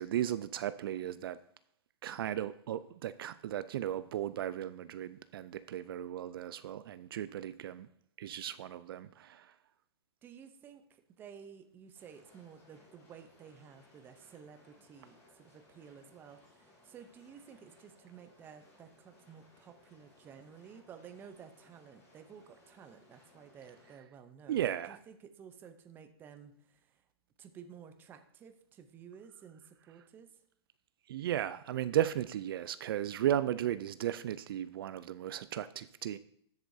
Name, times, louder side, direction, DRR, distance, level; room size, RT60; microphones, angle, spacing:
voice 1, 0.0-1.4 2.0-7.9 8.2-9.5 24.5-25.0 31.1-36.2, right 11 dB, 55° right, 0.4 m, -35 dB
voice 2, 10.2-27.0 27.4-30.3, right 7 dB, 15° right, 0.6 m, -53 dB
sound 1, 11.9-24.0, left 2 dB, 15° left, 4.2 m, -64 dB
13.0 x 7.9 x 2.7 m
hypercardioid pair, 160°, 14 cm